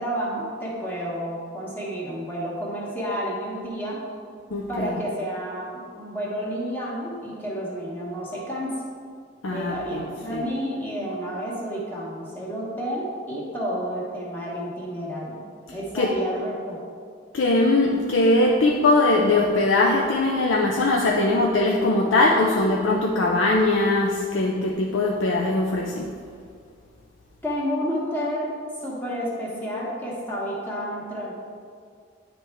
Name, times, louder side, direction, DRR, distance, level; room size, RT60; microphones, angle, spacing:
voice 1, 0.0-4.0 4.7-8.8 9.5-15.4 15.7-16.8 27.4-28.5 28.8-31.3, equal, 10° left, -6 dB, 1.3 m, -30 dB
voice 2, 4.5-5.0 9.4-10.0 10.3-10.5 15.9-16.2 17.3-26.1, left 2 dB, 90° left, -1 dB, 0.6 m, -21 dB
9.4 x 3.4 x 4.5 m, 2.2 s
head